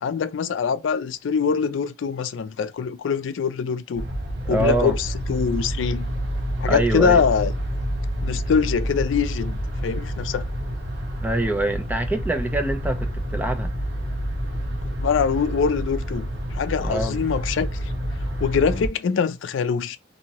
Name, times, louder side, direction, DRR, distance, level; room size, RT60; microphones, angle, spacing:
voice 1, 0.0-4.0 4.5-6.1 6.6-7.5 8.2-9.6 9.8-10.5 15.0-16.3 16.5-17.7 18.4-20.0, left 6 dB, 90° left, 0.4 m, -23 dB
sound 1, 4.0-18.9, equal, 65° right, 1.0 m, -28 dB
voice 2, 4.4-4.9 6.7-7.2 11.2-13.7 16.8-17.2, right 1 dB, 10° right, 0.5 m, -25 dB
2.8 x 2.6 x 2.9 m
head